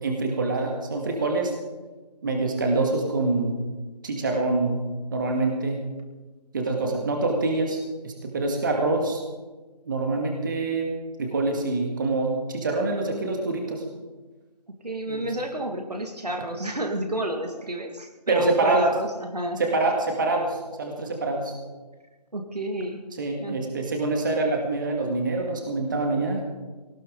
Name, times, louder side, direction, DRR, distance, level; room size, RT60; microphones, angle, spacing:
voice 1, 0.0-1.5 2.2-3.6 4.0-5.9 6.5-7.8 8.0-9.2 9.9-10.9 11.2-13.8 15.1-15.3 18.3-18.8 19.6-21.5 23.2-26.4, right 3 dB, 30° right, 2 dB, 2.2 m, -25 dB
voice 2, 6.8-7.2 14.8-19.6 22.3-23.0 23.4-23.6, right 1 dB, 70° right, 3 dB, 2.2 m, -30 dB
19.0 x 18.5 x 3.9 m, 1.3 s
figure-of-eight pair, 160°, 21 cm